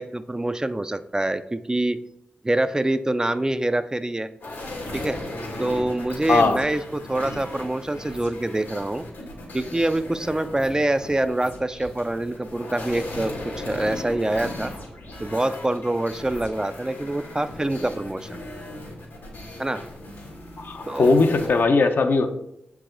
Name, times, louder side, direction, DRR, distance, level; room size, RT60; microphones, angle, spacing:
voice 1, 0.0-2.0 2.4-4.3 4.9-5.2 5.6-9.0 9.5-14.7 15.2-18.4 19.6-19.9 20.9-21.1, right 1 dB, 20° right, 11 dB, 0.4 m, -25 dB
sound 1, 4.4-21.6, left 1 dB, 90° left, 2.1 m, -37 dB
voice 2, 6.3-6.6 20.6-22.3, left 3 dB, 65° left, 6 dB, 0.7 m, -19 dB
6.9 x 4.8 x 3.8 m, 0.82 s
cardioid pair, 45°, 4 cm